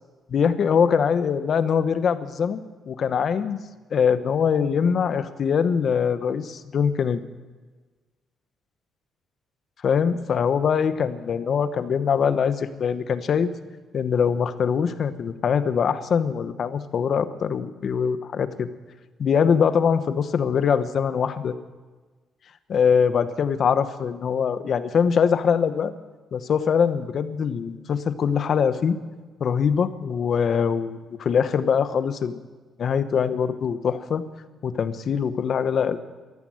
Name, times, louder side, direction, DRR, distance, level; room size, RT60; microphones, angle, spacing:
voice 1, 0.3-3.6 3.9-7.2 9.8-13.5 13.9-18.7 19.2-21.6 22.7-25.9 26.3-29.0 29.4-32.3 32.8-34.2 34.6-36.0, left 7 dB, 55° left, 12 dB, 1.1 m, -23 dB
14.0 x 13.5 x 7.8 m, 1.3 s
cardioid pair, 90°, 0 cm